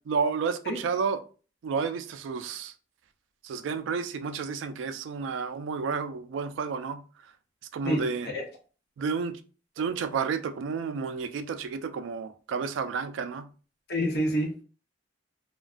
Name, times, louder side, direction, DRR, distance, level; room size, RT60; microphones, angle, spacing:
voice 1, 0.1-1.2 1.6-2.7 3.4-7.0 7.7-8.3 9.0-9.4 9.8-13.5, right 5 dB, 85° right, 0.3 m, -31 dB
voice 2, 7.8-8.4 13.9-14.6, equal, 55° left, 0.7 m, -28 dB
2.4 x 2.2 x 2.3 m
head